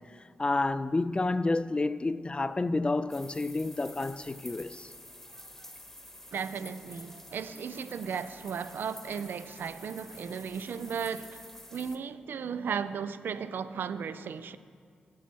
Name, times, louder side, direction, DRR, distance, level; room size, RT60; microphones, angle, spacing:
voice 1, 0.1-4.9, left 2 dB, 30° left, 0.4 m, -30 dB
sound 1, 3.1-12.0, left 1 dB, 10° left, 1.1 m, -49 dB
voice 2, 6.3-11.4 11.7-14.6, right 6 dB, 70° right, 0.4 m, -35 dB
8.3 x 7.1 x 6.1 m
supercardioid pair, 40°, 4 cm